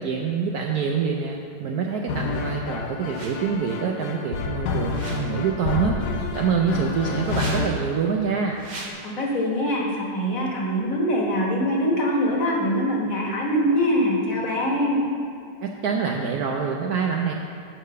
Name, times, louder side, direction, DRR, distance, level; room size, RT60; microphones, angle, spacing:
voice 1, 0.0-8.6 15.6-17.3, right 6 dB, 70° right, 1 dB, 0.9 m, -26 dB
sound 1, 2.1-7.7, left 4 dB, 70° left, 1.1 m, -29 dB
sound 2, 3.0-3.6 4.8-5.6 7.1-8.0 8.5-8.9, right 2 dB, 40° right, 0.6 m, -38 dB
voice 2, 9.0-15.0, equal, 50° left, -2 dB, 1.5 m, -23 dB
7.6 x 4.9 x 6.7 m, 2.5 s
omnidirectional pair, 2.1 m